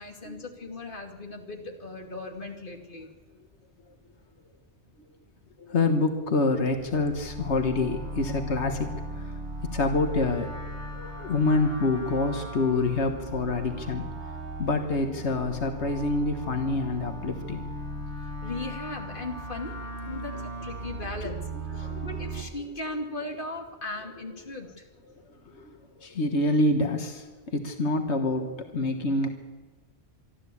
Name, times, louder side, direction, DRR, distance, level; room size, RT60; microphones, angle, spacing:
voice 1, 0.0-3.1 18.2-19.7 20.1-24.9, left 2 dB, 50° left, 3 dB, 2.7 m, -38 dB
voice 2, 5.6-9.3 9.6-10.5 10.9-14.1 14.6-17.6 21.2-21.3 21.8-22.0 25.5-29.3, left 2 dB, 90° left, 6 dB, 1.7 m, -27 dB
sound 1, 6.6-22.4, right 1 dB, 80° right, 2.9 m, -37 dB
24.5 x 12.5 x 8.5 m, 1.3 s
omnidirectional pair, 1.1 m